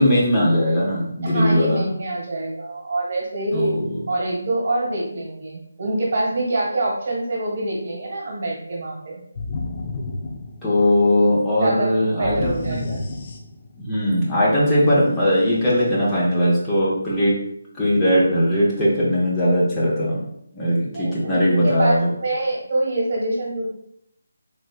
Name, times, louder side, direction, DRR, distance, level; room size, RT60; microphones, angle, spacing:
voice 1, 0.0-1.8 3.5-4.0 10.6-12.8 13.8-17.3 17.8-20.2 20.5-22.1, equal, 15° left, -7 dB, 0.7 m, -19 dB
voice 2, 1.2-3.8 4.1-9.2 11.6-11.9 12.2-13.0 20.9-23.7, right 2 dB, 50° right, -2 dB, 1.2 m, -25 dB
sound 1, 9.4-11.1 12.2-13.9, left 3 dB, 35° left, 0.4 m, -31 dB
3.3 x 3.0 x 2.3 m, 0.72 s
figure-of-eight pair, 160°, 0 cm